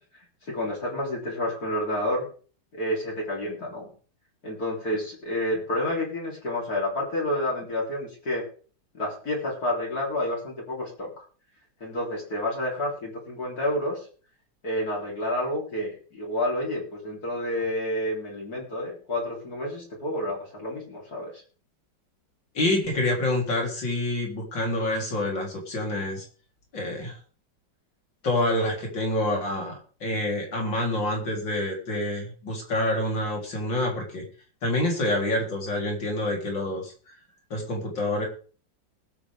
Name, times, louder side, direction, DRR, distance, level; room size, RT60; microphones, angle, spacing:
voice 1, 0.5-2.3 2.7-3.9 4.4-8.4 8.9-11.2 11.8-14.1 14.6-21.4, left 1 dB, 55° left, -3 dB, 4.1 m, -29 dB
voice 2, 22.5-26.3 26.7-27.2 28.2-34.2 34.6-36.9 37.5-38.3, left 1 dB, 85° left, 0 dB, 4.2 m, -27 dB
20.5 x 8.6 x 3.5 m, 0.40 s
omnidirectional pair, 1.9 m